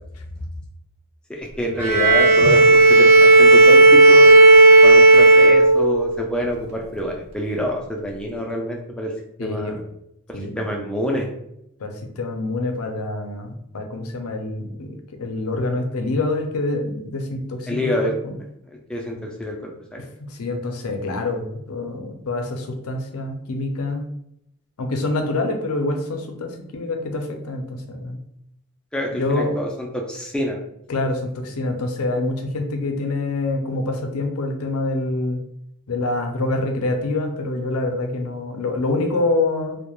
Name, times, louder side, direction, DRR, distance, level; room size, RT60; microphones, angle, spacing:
voice 1, 1.3-4.3 4.8-9.1 9.4-9.8 10.3-11.3 17.7-18.1 18.7-20.0 28.9-30.6, equal, 5° left, 0 dB, 0.3 m, -27 dB
Bowed string instrument, 1.8-6.2, right 2 dB, 70° right, 0.4 m, -11 dB
voice 2, 9.4-9.8 10.3-10.7 11.8-17.9 18.2-18.4 20.0-24.0 24.8-28.2 29.1-29.6 30.9-35.4 35.9-39.8, left 2 dB, 75° left, 4 dB, 0.5 m, -26 dB
2.3 x 2.1 x 3.0 m, 0.79 s
head